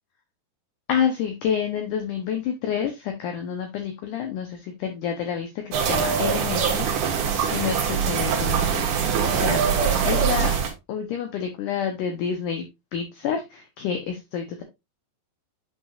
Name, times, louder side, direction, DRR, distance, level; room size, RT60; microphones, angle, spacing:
voice 1, 0.9-10.5 10.9-12.7 12.9-14.6, left 7 dB, 80° left, 1.8 m, -29 dB
sound 1, 5.7-10.7, right 7 dB, 60° right, 2.5 m, -23 dB
8.7 x 5.6 x 2.4 m
omnidirectional pair, 4.7 m